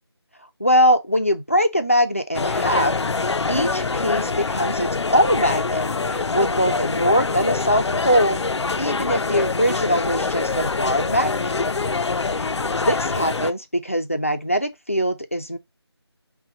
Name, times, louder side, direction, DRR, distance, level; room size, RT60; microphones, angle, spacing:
voice 1, 0.6-3.0 3.5-5.8 6.1-8.4 8.8-11.5 12.4-12.5 12.8-15.6, equal, 30° left, 0.5 m, -22 dB
sound 1, 2.3-13.5, left 4 dB, 85° left, 0.5 m, -24 dB
5.7 x 2.2 x 4.1 m
figure-of-eight pair, 180°, 14 cm